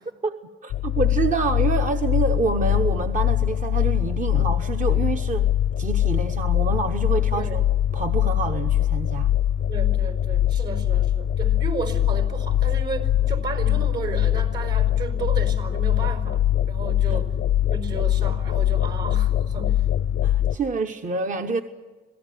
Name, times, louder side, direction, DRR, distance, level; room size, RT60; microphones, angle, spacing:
voice 1, 0.6-5.5 5.8-7.6 7.9-9.3 17.1-17.2 20.2-21.6, right 4 dB, 40° right, 0.9 m, -27 dB
sound 1, 0.7-20.6, left 11 dB, 75° left, 0.7 m, -22 dB
voice 2, 7.3-7.6 9.7-17.4 17.7-19.8, right 4 dB, 65° right, 4.7 m, -33 dB
26.5 x 17.5 x 9.3 m
cardioid pair, 90°, 20 cm